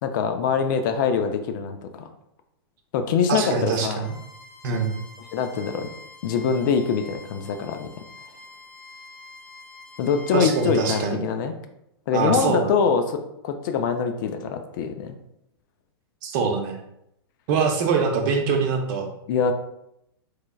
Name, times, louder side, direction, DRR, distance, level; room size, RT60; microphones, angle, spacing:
voice 1, 0.0-2.1 2.9-4.0 5.3-5.9 6.2-7.9 10.0-11.5 12.1-15.1 19.3-19.5, left 6 dB, 50° left, 7 dB, 0.4 m, -24 dB
voice 2, 3.3-4.1 4.6-4.9 10.3-11.2 12.1-12.8 16.2-16.8 17.5-19.1, right 5 dB, 45° right, 3 dB, 0.6 m, -23 dB
Bowed string instrument, 4.0-11.1, left 2 dB, 5° left, 0.7 m, -46 dB
3.6 x 3.2 x 2.2 m, 0.81 s
hypercardioid pair, 135°, 13 cm